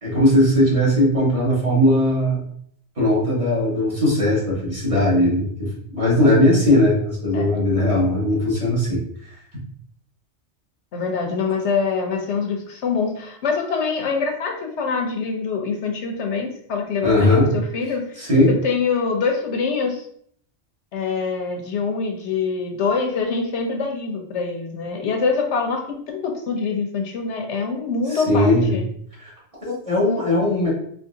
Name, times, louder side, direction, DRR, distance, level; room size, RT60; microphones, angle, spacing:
voice 1, 0.0-2.4 3.0-9.0 17.0-17.5 18.2-18.5 28.1-28.8 29.2-29.3 29.6-30.7, left 1 dB, 30° right, -7 dB, 1.9 m, -18 dB
voice 2, 10.9-20.1 20.9-28.8, left 5 dB, 85° left, 2 dB, 1.2 m, -25 dB
4.5 x 3.2 x 2.7 m, 0.63 s
omnidirectional pair, 1.1 m